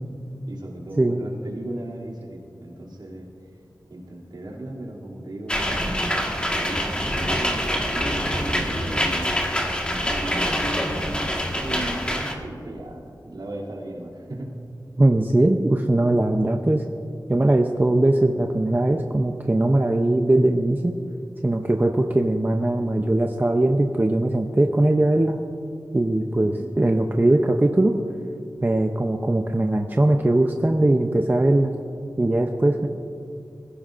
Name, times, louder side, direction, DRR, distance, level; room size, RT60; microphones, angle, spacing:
voice 1, 0.5-3.3 3.9-6.2 6.5-9.3 9.9-14.5 26.4-26.8, right 1 dB, 70° right, -5 dB, 2.8 m, -36 dB
sound 1, 5.5-12.3, equal, 15° left, 1.6 m, -25 dB
voice 2, 15.0-16.8 17.3-20.9 21.4-25.4 25.9-28.0 28.6-31.7 32.2-32.9, right 1 dB, 25° right, 4 dB, 0.6 m, -20 dB
21.0 x 16.0 x 2.6 m, 2.5 s
wide cardioid pair, 80°, 8 cm